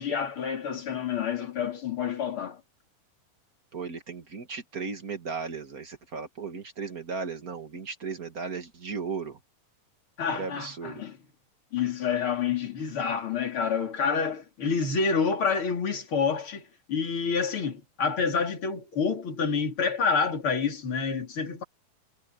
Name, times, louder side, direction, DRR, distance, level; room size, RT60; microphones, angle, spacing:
voice 1, 0.0-2.6 10.2-11.2 11.7-21.6, left 6 dB, 40° left, 3.9 m, -28 dB
voice 2, 3.7-9.4 10.3-11.0, right 5 dB, 40° right, 1.3 m, -36 dB
omnidirectional pair, 4.0 m